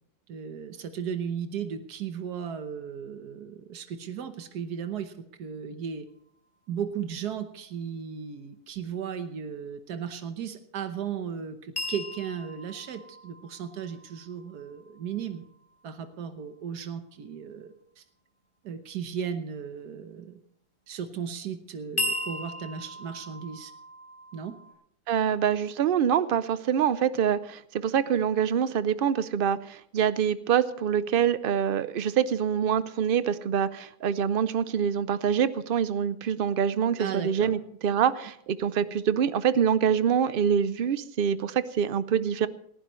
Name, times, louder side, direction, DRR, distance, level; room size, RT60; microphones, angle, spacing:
voice 1, 0.3-5.1 5.4-6.1 6.7-15.4 15.8-18.0 18.6-20.4 20.9-23.7 24.3-24.6 37.0-37.5, right 7 dB, 85° right, 8 dB, 1.6 m, -36 dB
sound 1, 11.8-15.7 22.0-24.7, left 1 dB, 30° left, 4.1 m, -37 dB
voice 2, 25.1-42.5, right 8 dB, 65° right, 15 dB, 0.5 m, -25 dB
19.0 x 15.0 x 3.1 m, 0.72 s
omnidirectional pair, 1.7 m